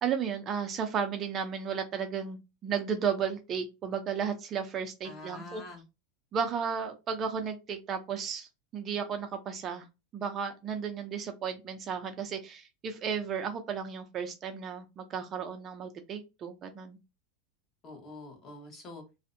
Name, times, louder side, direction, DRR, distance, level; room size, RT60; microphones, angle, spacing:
voice 1, 0.0-5.6 6.3-8.5 8.7-9.9 10.1-17.0, right 7 dB, 30° right, 6 dB, 0.4 m, -34 dB
voice 2, 5.0-5.8 17.8-19.0, left 2 dB, 30° left, 2 dB, 0.9 m, -45 dB
2.5 x 2.0 x 2.5 m, 0.26 s
supercardioid pair, 135°, 0 cm